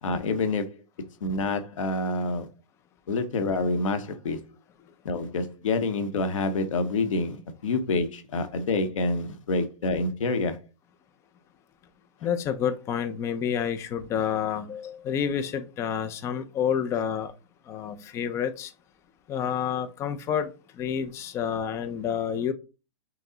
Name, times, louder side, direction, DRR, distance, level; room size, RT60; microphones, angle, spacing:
voice 1, 0.0-0.8 1.2-2.5 3.1-4.4 5.0-10.6, left 3 dB, 85° left, 0.9 m, -27 dB
voice 2, 12.2-17.3 17.7-18.7 19.3-22.5, left 8 dB, 15° left, 0.3 m, -29 dB
5.8 x 2.0 x 3.8 m
hypercardioid pair, 140°, 16 cm